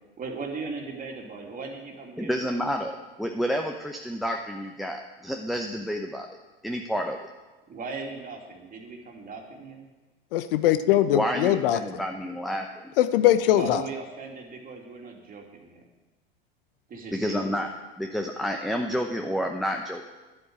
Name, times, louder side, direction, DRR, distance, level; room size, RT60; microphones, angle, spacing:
voice 1, 0.2-2.6 7.7-9.9 13.5-15.8 16.9-17.6, right 4 dB, 30° right, 2 dB, 2.7 m, -38 dB
voice 2, 2.2-6.3 6.6-7.2 11.1-12.7 17.1-17.7 18.0-20.0, equal, ahead, 4 dB, 0.8 m, -29 dB
voice 3, 10.3-11.8 13.0-13.8, left 12 dB, 65° left, 12 dB, 0.8 m, -21 dB
11.0 x 8.0 x 8.7 m, 1.2 s
hypercardioid pair, 90°, 30 cm